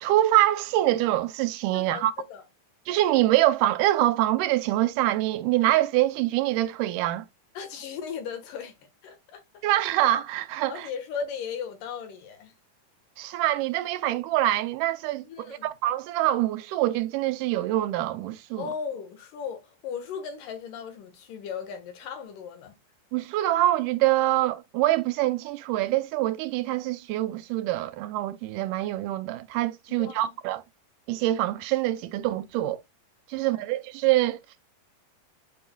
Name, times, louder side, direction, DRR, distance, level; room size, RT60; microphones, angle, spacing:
voice 1, 0.0-2.1 2.9-7.3 9.6-10.9 13.2-18.7 23.1-30.6 31.1-32.8 33.3-34.4, right 15 dB, 80° right, 2.1 m, -25 dB
voice 2, 1.7-2.5 7.5-8.8 9.0-9.6 10.7-12.5 15.2-15.7 18.6-22.8 29.9-30.3 33.3-33.6, left 6 dB, 80° left, 3.0 m, -37 dB
9.5 x 4.7 x 2.2 m
omnidirectional pair, 3.8 m